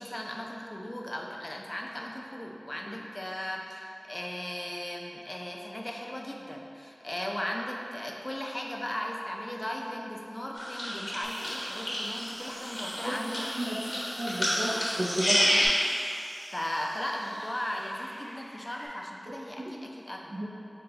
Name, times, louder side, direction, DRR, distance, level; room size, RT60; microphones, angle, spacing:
voice 1, 0.0-13.6 15.4-15.7 16.5-20.4, left 1 dB, 25° left, 0 dB, 0.5 m, -37 dB
sound 1, 10.5-15.7, equal, 85° left, 1.1 m, -30 dB
sound 2, 11.2-18.9, equal, 25° right, 0.9 m, -49 dB
voice 2, 14.2-15.4 19.6-19.7 20.3-20.4, right 1 dB, 75° right, -7 dB, 0.5 m, -32 dB
5.4 x 2.3 x 3.8 m, 2.7 s
wide cardioid pair, 65°, 0 cm